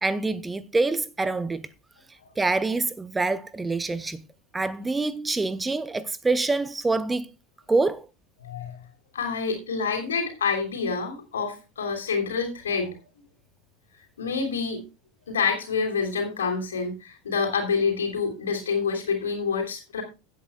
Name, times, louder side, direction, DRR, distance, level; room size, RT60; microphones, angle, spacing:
voice 1, 0.0-1.7 2.4-4.2 4.5-7.3 7.7-8.1, right 3 dB, 15° right, 0.6 m, -26 dB
voice 2, 8.4-8.7 9.1-12.9 14.2-14.8 15.3-20.0, left 5 dB, 70° left, 3.2 m, -27 dB
16.5 x 8.5 x 2.3 m
figure-of-eight pair, 75°, 0 cm